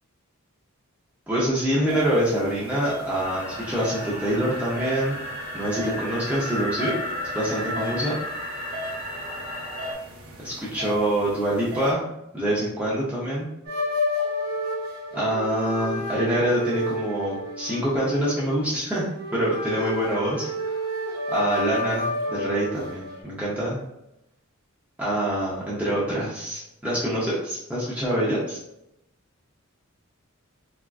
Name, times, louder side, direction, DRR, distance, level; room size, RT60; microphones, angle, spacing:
voice 1, 1.3-5.2 5.5-6.9 7.3-8.2 10.4-12.1 12.3-13.5 15.1-20.8 21.3-23.8 25.0-28.6, right 1 dB, 5° right, -8 dB, 0.5 m, -25 dB
sound 1, 1.9-11.9, equal, 75° right, 0.7 m, -39 dB
sound 2, 3.2-9.9, left 1 dB, 35° left, 0.8 m, -34 dB
sound 3, 13.6-23.2, left 1 dB, 50° right, 0.9 m, -30 dB
3.5 x 2.3 x 2.3 m, 0.85 s
head